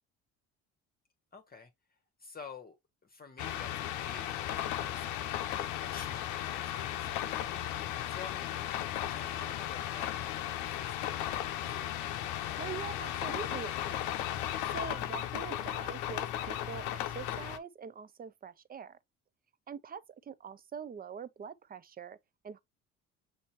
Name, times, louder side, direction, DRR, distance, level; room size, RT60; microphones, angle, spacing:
voice 1, 1.3-1.7 2.2-2.8 3.0-3.7 4.0-5.1 5.4-8.7 9.1-12.0, left 5 dB, 25° left, 1.0 m, -50 dB
sound 1, 3.4-17.6, left 11 dB, 80° left, 0.7 m, -35 dB
voice 2, 12.6-14.2 14.7-19.0 19.7-22.2 22.4-22.6, right 6 dB, 25° right, 0.5 m, -44 dB
6.5 x 2.8 x 2.9 m
hypercardioid pair, 60°, 34 cm